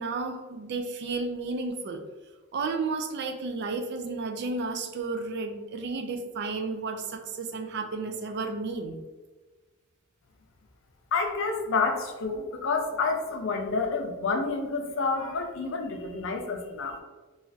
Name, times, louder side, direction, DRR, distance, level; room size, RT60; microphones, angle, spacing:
voice 1, 0.0-2.0 2.5-9.0, right 3 dB, 55° right, 6 dB, 0.3 m, -32 dB
voice 2, 11.1-17.0, left 4 dB, 65° left, 4 dB, 0.4 m, -29 dB
3.1 x 2.4 x 2.6 m, 1.3 s
head